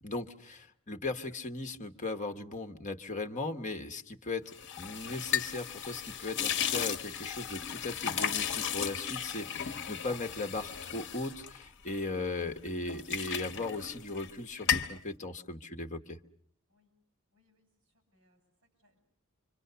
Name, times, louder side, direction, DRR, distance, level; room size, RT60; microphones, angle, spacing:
voice 1, 0.0-16.2, left 2 dB, 35° left, 7 dB, 1.2 m, -38 dB
sound 1, 4.5-12.3 12.7-14.3 14.6-15.0, left 8 dB, 55° left, 1.0 m, -35 dB
voice 2, 17.3-19.0, left 2 dB, 60° right, 5 dB, 6.3 m, -72 dB
26.5 x 25.0 x 6.8 m, 0.64 s
head